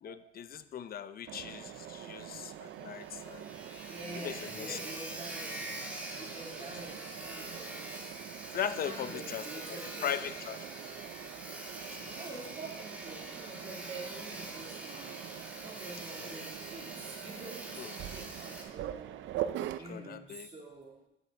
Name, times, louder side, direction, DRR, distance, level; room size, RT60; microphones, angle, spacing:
voice 1, 0.0-3.5 4.1-4.8 8.5-10.6 11.9-12.2 16.2-16.4 17.8-17.9 19.9-20.5, left 9 dB, 50° left, 13 dB, 0.5 m, -39 dB
Mechanisms, 1.3-19.8, right 11 dB, 75° right, 0.5 m, -44 dB
Sawing, 1.8-1.9 2.2-2.3 2.7-2.8 2.9-18.6, right 1 dB, 5° right, 1.6 m, -45 dB
voice 2, 3.9-5.7 6.2-8.1 8.8-10.8 12.1-15.2 15.5-19.2 19.8-21.0, right 2 dB, 35° right, -3 dB, 2.5 m, -47 dB
10.0 x 6.3 x 3.3 m, 0.89 s
cardioid pair, 90°, 20 cm